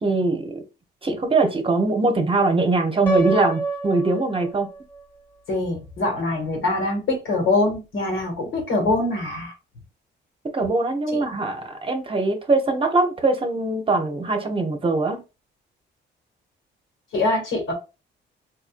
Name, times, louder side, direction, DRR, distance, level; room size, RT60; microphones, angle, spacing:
voice 1, 0.0-0.6 1.0-4.7 10.5-15.2, right 3 dB, 25° right, 0.8 m, -22 dB
Piano, 3.1-5.0, right 3 dB, 10° left, 1.3 m, -27 dB
voice 2, 5.5-9.5 11.1-11.2 17.1-17.7, left 2 dB, 85° left, 2.0 m, -23 dB
4.1 x 2.6 x 2.5 m
cardioid pair, 90°, 20 cm